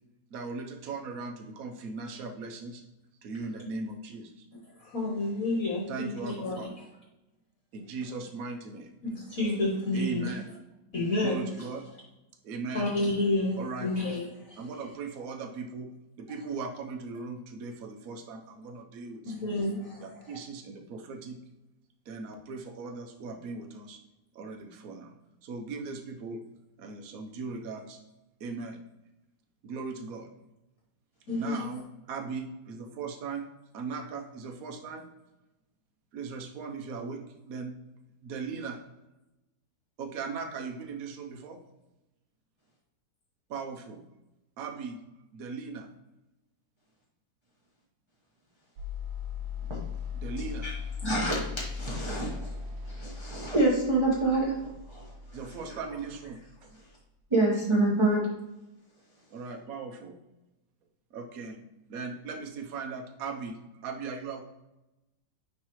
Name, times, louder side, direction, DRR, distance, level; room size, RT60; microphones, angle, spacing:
voice 1, 0.3-2.8 3.2-4.5 5.9-6.7 7.7-8.9 9.9-10.4 11.2-11.8 12.4-12.8 13.6-13.9 14.6-15.9 16.2-19.3 20.0-21.4 22.1-24.0 24.3-25.1 25.4-26.4 26.8-28.0 28.4-28.8 29.6-30.3 31.4-31.8 32.1-33.4 33.7-35.0 36.1-37.2 37.5-37.7 38.2-38.7 40.0-41.6 43.5-44.0 44.6-45.0 45.3-45.9 50.1-50.7 55.3-56.4 59.3-60.1 61.1-61.6 61.9-64.4, right 4 dB, 60° right, 3 dB, 1.1 m, -38 dB
voice 2, 4.5-6.8 9.0-10.5 10.9-11.7 12.7-14.7 19.2-20.4 31.3-31.7, left 2 dB, 55° left, -2 dB, 1.3 m, -30 dB
sound 1, 48.8-56.9, left 5 dB, 85° right, 1.4 m, -39 dB
voice 3, 51.0-51.4 51.7-55.1 57.3-58.3, right 2 dB, 20° right, -6 dB, 0.9 m, -27 dB
9.8 x 3.3 x 3.0 m, 0.97 s
omnidirectional pair, 2.0 m